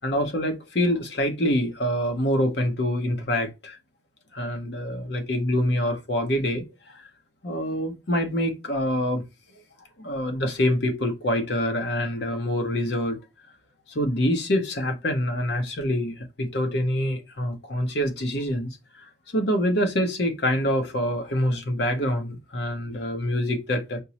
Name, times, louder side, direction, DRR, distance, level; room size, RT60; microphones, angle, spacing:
voice 1, 0.0-3.8 4.3-6.6 6.9-7.0 7.4-9.2 10.0-13.2 13.9-18.8 19.3-24.0, equal, 65° left, 0.8 m, -25 dB
5.1 x 2.0 x 2.8 m
head